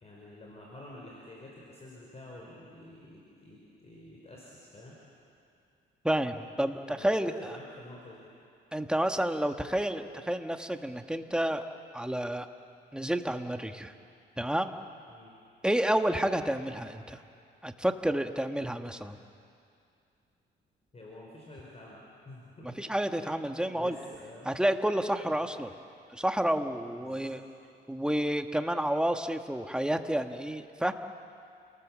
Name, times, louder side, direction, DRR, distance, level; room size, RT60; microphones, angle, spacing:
voice 1, 0.0-5.0 6.9-8.3 15.1-15.3 20.9-22.9 23.3-24.5 25.3-25.5 27.0-27.4, left 1 dB, 30° left, -3 dB, 4.9 m, -49 dB
voice 2, 6.0-7.6 8.7-11.7 11.9-12.5 12.9-13.9 14.4-14.7 15.6-17.2 17.6-19.2 22.8-24.0 24.4-25.7 26.1-27.4 27.9-30.9, right 1 dB, 5° right, 7 dB, 1.3 m, -30 dB
28.5 x 19.0 x 7.5 m, 2.5 s
cardioid pair, 90°, 20 cm